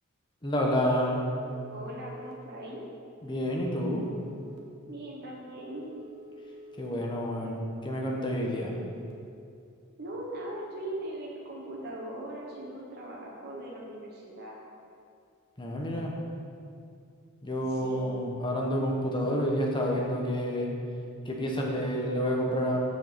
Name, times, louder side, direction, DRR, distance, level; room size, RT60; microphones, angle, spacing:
voice 1, 0.4-1.2 3.2-4.1 6.8-8.7 15.6-16.2 17.4-20.7 21.3-22.8, equal, 20° left, -1 dB, 1.1 m, -29 dB
Telephone, 1.2-2.3 3.5-4.6 5.8-6.9 8.0-9.1, equal, 90° right, 1.3 m, -49 dB
voice 2, 1.7-2.8 4.9-5.9 10.0-14.6 17.7-18.2, right 1 dB, 50° right, -3 dB, 1.1 m, -40 dB
6.8 x 5.3 x 6.8 m, 2.4 s
head